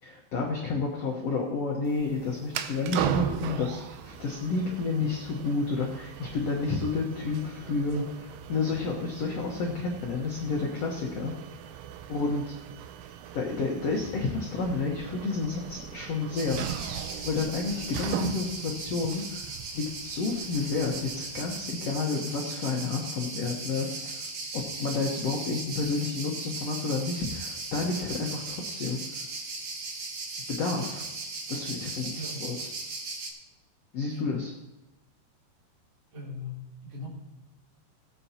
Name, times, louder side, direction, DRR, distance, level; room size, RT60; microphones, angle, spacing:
voice 1, 0.0-11.3 11.6-11.7 12.1-12.5 13.3-16.9 17.2-24.2 24.5-29.2 30.5-31.1 31.5-32.5 33.9-34.5, left 4 dB, 80° left, -1 dB, 1.4 m, -30 dB
sound 1, 1.8-21.7, right 10 dB, 80° right, 2.4 m, -38 dB
sound 2, 16.3-33.3, right 3 dB, 60° right, 1.5 m, -38 dB
voice 2, 32.1-32.5 34.1-34.4 36.1-37.1, left 2 dB, 40° right, -5 dB, 4.0 m, -39 dB
18.0 x 8.6 x 2.9 m, 1.0 s
omnidirectional pair, 4.8 m